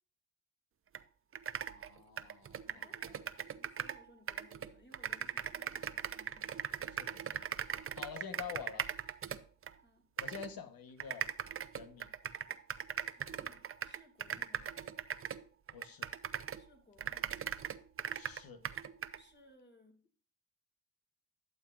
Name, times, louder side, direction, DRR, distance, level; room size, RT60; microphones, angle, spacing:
sound 1, 0.9-1.0 1.3-4.0 4.3-9.7 10.2-10.5 11.0-16.7 17.0-19.2, right 8 dB, 40° right, 0.5 m, -40 dB
voice 1, 1.7-3.1 6.9-7.5 8.0-8.9 10.2-11.3 11.7-12.1 14.3-14.4 15.7-16.1 18.1-18.6, left 6 dB, 85° left, 1.2 m, -48 dB
voice 2, 2.6-6.6 9.8-10.1 13.1-14.8 16.5-17.5 19.1-20.0, left 1 dB, 30° left, 2.1 m, -64 dB
11.5 x 7.3 x 2.4 m
cardioid pair, 80°, 34 cm